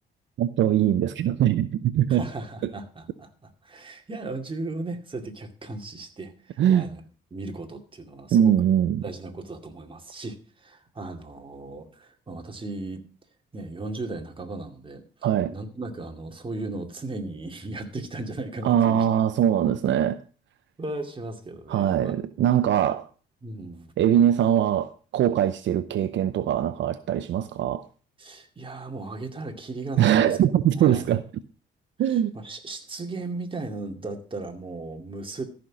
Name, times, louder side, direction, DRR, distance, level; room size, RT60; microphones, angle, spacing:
voice 1, 0.4-2.2 6.6-6.9 8.3-9.0 15.2-15.5 18.6-20.2 21.7-23.1 24.0-27.8 30.0-31.2 32.0-32.3, right 10 dB, 70° right, 0.7 m, -22 dB
voice 2, 2.1-7.0 7.3-8.6 9.0-13.0 13.5-15.0 15.5-19.1 20.8-22.1 22.8-22.9 23.4-23.9 28.2-30.4 30.7-31.1 32.1-35.4, right 2 dB, 25° right, 2.4 m, -36 dB
14.0 x 6.0 x 6.2 m
cardioid pair, 90°, 20 cm